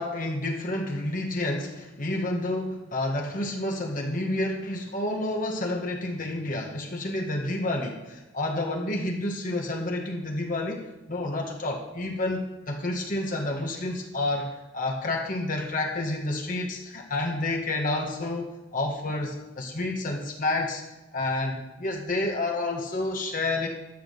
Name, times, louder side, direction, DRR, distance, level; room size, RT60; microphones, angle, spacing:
voice 1, 0.0-20.8 21.1-23.7, left 2 dB, 40° left, 1 dB, 1.6 m, -29 dB
13.0 x 6.3 x 7.9 m, 1.1 s
head